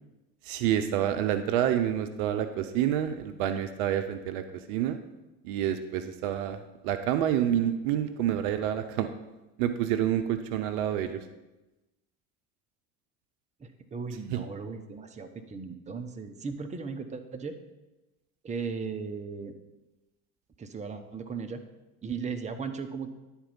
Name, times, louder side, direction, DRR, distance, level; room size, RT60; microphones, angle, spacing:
voice 1, 0.5-5.0 5.4-6.6 6.8-9.1 9.6-11.2 14.3-14.4, right 10 dB, 55° right, 9 dB, 0.7 m, -28 dB
voice 2, 13.6-17.6 18.4-19.5 20.6-21.6 22.0-23.1, right 5 dB, 15° right, 7 dB, 0.7 m, -37 dB
10.5 x 4.4 x 5.4 m, 1.0 s
figure-of-eight pair, 65°, 46 cm